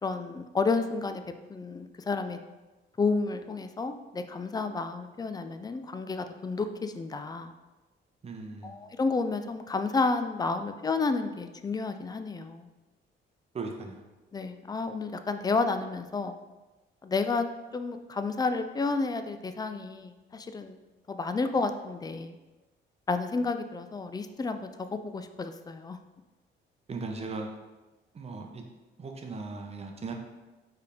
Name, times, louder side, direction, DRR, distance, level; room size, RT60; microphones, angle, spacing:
voice 1, 0.0-1.2 1.5-2.4 3.0-7.5 8.6-12.7 14.3-16.3 17.0-17.5 17.7-20.8 21.1-22.4 23.1-26.0, left 4 dB, 20° left, 9 dB, 0.3 m, -31 dB
voice 2, 8.2-8.7 13.5-14.0 26.9-27.5 28.1-28.6 29.0-30.2, right 3 dB, 30° right, 3 dB, 0.7 m, -38 dB
4.5 x 3.4 x 3.4 m, 1.1 s
cardioid pair, 90°, 20 cm